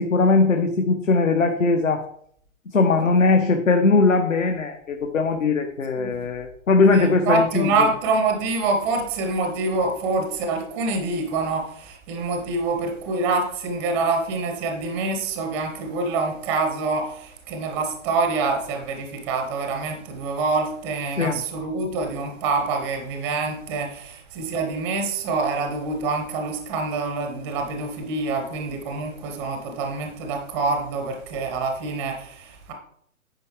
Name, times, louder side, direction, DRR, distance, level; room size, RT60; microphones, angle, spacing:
voice 1, 0.0-2.0 2.7-7.9 21.2-21.4, left 3 dB, 65° left, 5 dB, 1.2 m, -20 dB
voice 2, 6.9-32.7, right 3 dB, 5° right, 4 dB, 0.6 m, -26 dB
9.7 x 5.0 x 4.7 m, 0.64 s
figure-of-eight pair, 140°, 41 cm